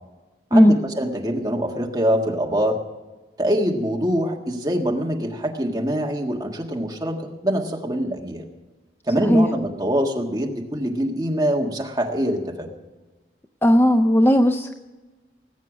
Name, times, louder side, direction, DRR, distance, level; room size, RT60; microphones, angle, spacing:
voice 1, 0.5-2.8 3.4-8.5 9.1-12.7, equal, 20° right, 0 dB, 1.6 m, -24 dB
voice 2, 13.6-14.7, equal, 10° left, 6 dB, 0.5 m, -16 dB
19.5 x 8.2 x 6.2 m, 1.2 s
head